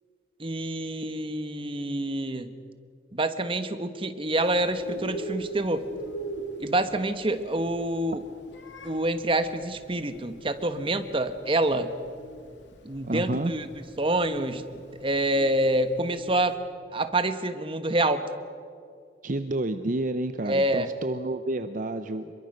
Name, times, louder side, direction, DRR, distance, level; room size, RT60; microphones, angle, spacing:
voice 1, 0.4-2.5 3.1-5.8 6.6-8.2 8.8-11.9 12.8-13.6 14.0-14.7 15.0-16.6 16.9-18.2 20.5-20.9, right 1 dB, 30° right, 9 dB, 1.3 m, -27 dB
Bird, 4.4-16.5, right 2 dB, 80° left, 2.8 m, -41 dB
voice 2, 13.0-13.5 19.2-22.3, right 2 dB, 45° right, 9 dB, 0.8 m, -29 dB
25.5 x 23.0 x 6.6 m, 2.3 s
head